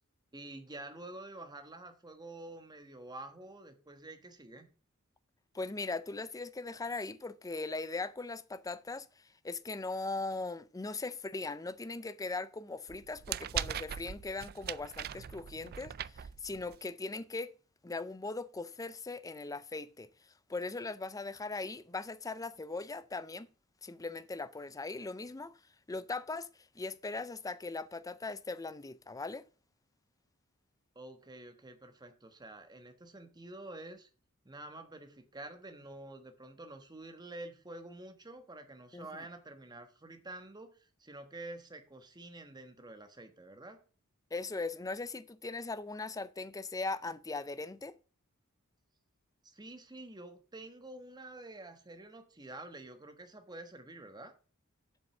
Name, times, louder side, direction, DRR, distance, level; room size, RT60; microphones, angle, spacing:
voice 1, 0.3-4.7 30.9-34.1 34.4-43.8 49.4-54.3, right 2 dB, 20° right, 1.2 m, -48 dB
voice 2, 5.5-9.1 9.4-17.5 17.8-20.1 20.5-23.5 23.8-25.6 25.9-26.5 26.7-29.4 38.9-39.1 44.3-48.0, left 3 dB, 15° left, 0.5 m, -39 dB
sound 1, 12.9-16.9, right 10 dB, 45° right, 0.3 m, -40 dB
7.6 x 5.2 x 7.0 m
head